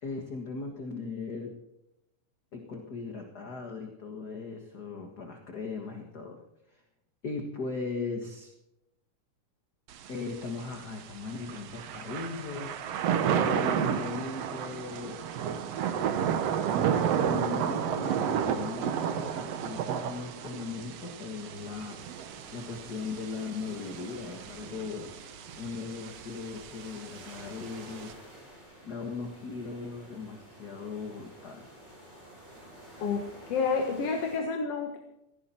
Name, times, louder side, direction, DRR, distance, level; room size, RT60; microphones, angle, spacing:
voice 1, 0.0-1.6 2.5-6.4 6.7-6.8 7.2-8.5 10.1-12.7 13.3-15.2 17.2-22.0 22.5-28.2 28.8-31.7, left 4 dB, 40° left, 3 dB, 1.7 m, -38 dB
Thunder / Rain, 9.9-28.1, right 8 dB, 65° right, 1.9 m, -32 dB
sound 1, 21.5-34.4, equal, 20° right, 6.7 m, -51 dB
voice 2, 33.0-35.0, left 5 dB, 55° left, 4 dB, 2.2 m, -29 dB
17.5 x 16.0 x 4.4 m, 0.86 s
omnidirectional pair, 3.5 m